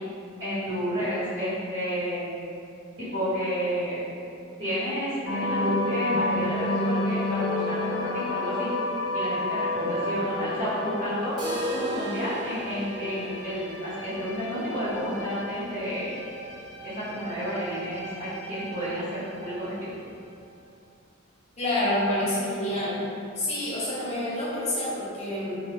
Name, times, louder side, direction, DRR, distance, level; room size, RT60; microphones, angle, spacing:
voice 1, 0.4-2.4 3.0-4.0 4.6-8.7 9.1-11.3 11.7-16.1 16.8-19.8, equal, 65° right, -18 dB, 1.4 m, -30 dB
sound 1, 5.3-19.7, left 2 dB, 75° left, 0.5 m, -32 dB
sound 2, 11.4-17.2 17.5-17.6 17.9-18.0 18.5-18.6 19.5-19.6, equal, 20° right, 0.4 m, -36 dB
voice 2, 21.6-23.0 23.4-25.6, left 1 dB, 30° left, -8 dB, 0.8 m, -28 dB
2.8 x 2.1 x 3.3 m, 2.5 s
head